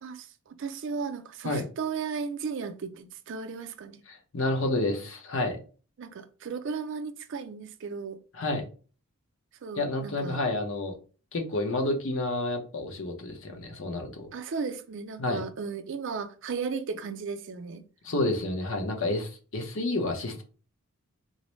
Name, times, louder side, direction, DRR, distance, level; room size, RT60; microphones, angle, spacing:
voice 1, 0.0-4.0 6.0-8.2 9.6-10.4 14.3-17.8, right 5 dB, 55° right, 0.4 m, -35 dB
voice 2, 4.1-5.6 8.3-8.6 9.8-11.0 11.3-14.3 15.2-15.4 18.0-20.4, left 2 dB, 60° left, 0.7 m, -29 dB
3.9 x 2.0 x 3.0 m
head